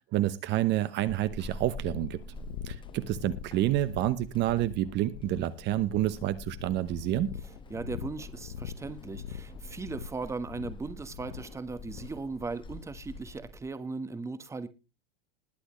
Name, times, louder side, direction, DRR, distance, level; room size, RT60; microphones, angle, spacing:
voice 1, 0.1-2.2 2.6-7.4, right 14 dB, 35° right, 1.0 m, -29 dB
Walk footsteps / Squeak, 1.1-13.7, left 2 dB, 15° left, 1.5 m, -46 dB
sound 1, 1.7-12.2, left 9 dB, 70° left, 1.3 m, -43 dB
voice 2, 7.7-14.7, right 3 dB, 10° right, 1.3 m, -38 dB
21.0 x 7.9 x 3.2 m
supercardioid pair, 130°, 30 cm